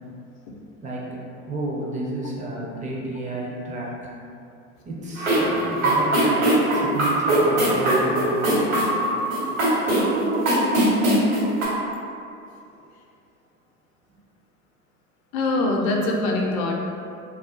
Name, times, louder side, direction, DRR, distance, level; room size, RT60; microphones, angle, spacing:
voice 1, 0.8-4.1 4.9-6.4 6.7-8.9, right 2 dB, 20° right, -3 dB, 0.4 m, -31 dB
sound 1, 5.2-11.6, right 1 dB, 70° right, 1.1 m, -21 dB
voice 2, 15.3-16.7, left 2 dB, 45° left, 0 dB, 0.5 m, -23 dB
2.4 x 2.3 x 2.3 m, 2.5 s
hypercardioid pair, 75°, 41 cm